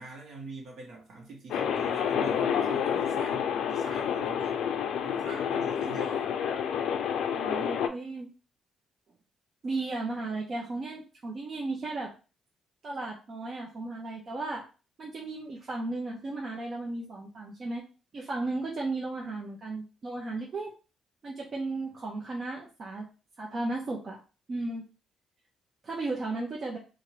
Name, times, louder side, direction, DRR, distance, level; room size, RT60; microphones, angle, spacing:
voice 1, 0.0-4.7 5.0-6.3, right 2 dB, 70° right, 0 dB, 1.3 m, -44 dB
sound 1, 1.5-7.9, left 8 dB, 80° left, 0.4 m, -29 dB
voice 2, 7.3-8.3 9.6-12.1 12.8-14.6 15.0-17.8 18.1-20.7 21.2-23.1 23.4-24.2 24.5-24.8 25.8-26.8, right 2 dB, 45° right, -2 dB, 0.7 m, -35 dB
2.7 x 2.6 x 3.1 m, 0.33 s
cardioid pair, 90°, 0 cm